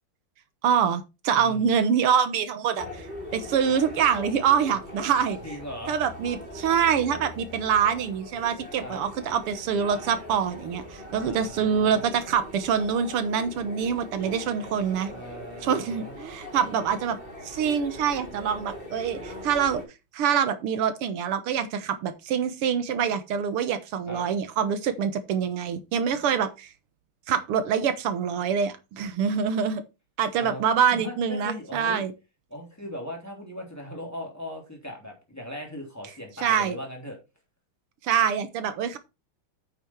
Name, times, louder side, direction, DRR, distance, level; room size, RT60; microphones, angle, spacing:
voice 1, 0.6-5.4 5.9-15.1 15.6-17.2 17.4-19.8 20.1-26.7 27.3-29.8 30.2-32.1 36.4-36.8 38.0-39.0, right 7 dB, 90° right, 11 dB, 2.1 m, -25 dB
voice 2, 1.3-1.7 5.4-5.9 8.8-9.0 11.1-12.0 15.1-16.1 24.1-24.2 30.4-30.6 30.9-32.0 32.5-37.2, left 1 dB, 5° left, 1 dB, 3.1 m, -38 dB
sound 1, 2.8-19.8, left 1 dB, 25° right, 3.2 m, -41 dB
8.7 x 6.4 x 4.5 m, 0.26 s
omnidirectional pair, 2.4 m